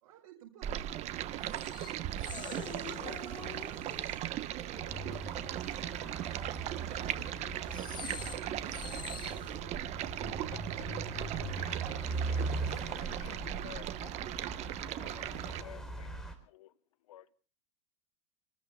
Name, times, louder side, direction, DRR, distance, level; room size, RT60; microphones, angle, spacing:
voice 1, 0.0-2.7, right 10 dB, 60° right, 5.6 m, -56 dB
Stream, 0.6-15.6, right 12 dB, 40° right, 1.2 m, -38 dB
sound 1, 1.3-4.4 4.7-6.1 6.5-6.7 7.5-9.7 10.5-10.6 10.8-11.0 11.5-11.8, left 9 dB, 25° left, 0.7 m, -47 dB
voice 2, 4.0-13.2 14.0-14.2 15.2-15.9, right 4 dB, 20° right, 6.8 m, -57 dB
sound 2, 4.7-16.3, right 2 dB, 5° left, 4.3 m, -41 dB
voice 3, 13.2-13.9 15.0-16.1 16.5-16.7 17.1-17.2, left 12 dB, 75° left, 1.1 m, -52 dB
29.5 x 20.0 x 2.3 m
hypercardioid pair, 115°, 17 cm